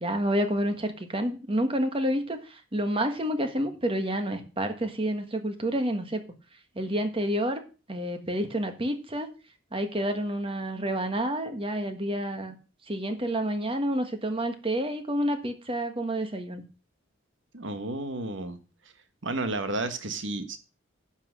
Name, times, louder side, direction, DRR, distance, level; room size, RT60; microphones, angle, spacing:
voice 1, 0.0-6.2 6.7-7.6 7.9-9.3 9.7-12.5 12.9-16.6, right 1 dB, 30° right, 7 dB, 1.5 m, -29 dB
voice 2, 17.5-18.6 19.2-20.6, right 2 dB, 70° right, 9 dB, 1.5 m, -32 dB
10.5 x 5.9 x 6.3 m, 0.33 s
head